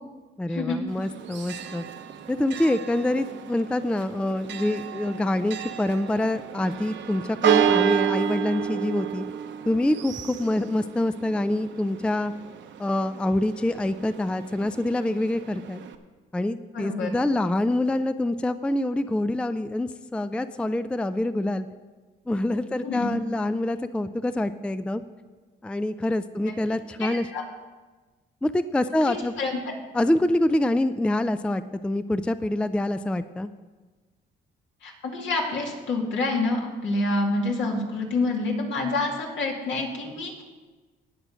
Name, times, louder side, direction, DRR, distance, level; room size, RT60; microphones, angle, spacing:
voice 1, 0.4-1.8 2.3-9.2 9.7-12.3 12.8-15.8 16.3-21.7 22.3-25.0 25.6-27.3 28.4-29.3 29.9-33.5, left 1 dB, 5° left, 12 dB, 0.4 m, -26 dB
Church bell, 0.9-16.0, right 9 dB, 70° right, 0.9 m, -31 dB
voice 2, 16.7-17.1 22.8-23.1 27.0-27.4 29.0-29.6 34.8-40.4, left 2 dB, 70° left, 0 dB, 2.4 m, -27 dB
18.5 x 6.2 x 5.0 m, 1.3 s
cardioid pair, 90°, 20 cm